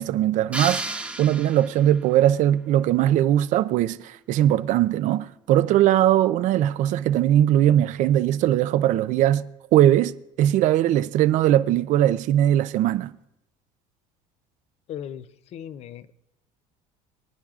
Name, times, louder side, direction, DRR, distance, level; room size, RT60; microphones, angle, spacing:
voice 1, 0.0-9.5 9.7-13.1, right 12 dB, 55° right, 0.5 m, -20 dB
sound 1, 0.5-2.1, right 2 dB, 10° right, 1.1 m, -32 dB
voice 2, 14.9-16.1, left 9 dB, 40° left, 0.5 m, -37 dB
23.5 x 10.5 x 2.4 m
cardioid pair, 145°, 16 cm